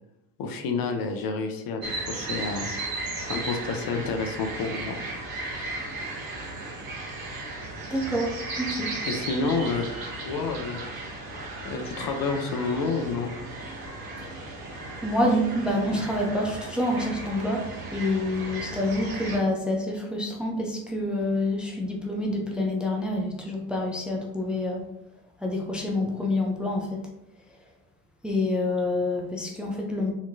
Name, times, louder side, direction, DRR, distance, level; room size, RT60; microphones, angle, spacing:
voice 1, 0.4-5.0 9.1-10.8 11.6-13.3, left 4 dB, 45° left, 4 dB, 0.8 m, -29 dB
sound 1, 1.8-19.4, right 2 dB, 50° right, 1.4 m, -36 dB
voice 2, 7.9-8.9 15.0-17.6 17.9-24.8 25.4-27.0 28.2-30.1, left 1 dB, ahead, 0 dB, 0.6 m, -27 dB
4.2 x 2.9 x 2.7 m, 0.86 s
hypercardioid pair, 65°, 47 cm